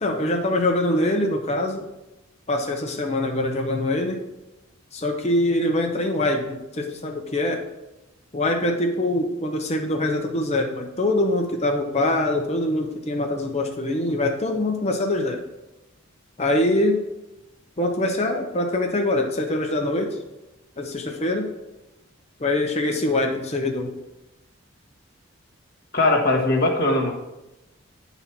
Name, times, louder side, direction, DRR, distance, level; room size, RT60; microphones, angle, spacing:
voice 1, 0.0-1.8 2.5-4.2 4.9-7.6 8.3-15.4 16.4-17.1 17.8-20.2 20.8-21.5 22.4-23.9, left 1 dB, 30° left, 3 dB, 0.8 m, -24 dB
voice 2, 25.9-27.1, left 2 dB, 45° left, 1 dB, 1.5 m, -20 dB
9.8 x 4.0 x 5.9 m, 0.97 s
head